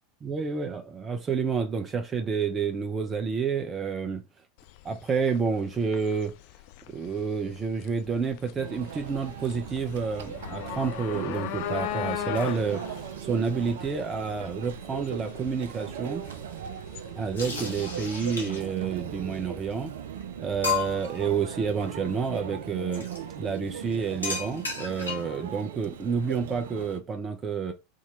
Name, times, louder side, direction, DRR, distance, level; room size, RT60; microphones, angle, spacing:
voice 1, 0.2-4.2 4.8-6.3 6.9-12.8 13.2-16.2 17.2-19.9 20.4-23.1 23.4-27.7, right 5 dB, 25° right, 0.8 m, -29 dB
sound 1, 4.6-17.7, left 13 dB, 55° left, 0.4 m, -39 dB
Conversation / Chatter / Crowd, 8.6-27.0, right 9 dB, 65° right, 0.5 m, -39 dB
sound 2, 17.4-18.8 19.7-19.8 20.2-20.3 20.6-21.2 22.9-23.2 24.2-25.4, left 6 dB, 85° left, 1.5 m, -33 dB
3.7 x 2.9 x 4.4 m
figure-of-eight pair, 85°, 0 cm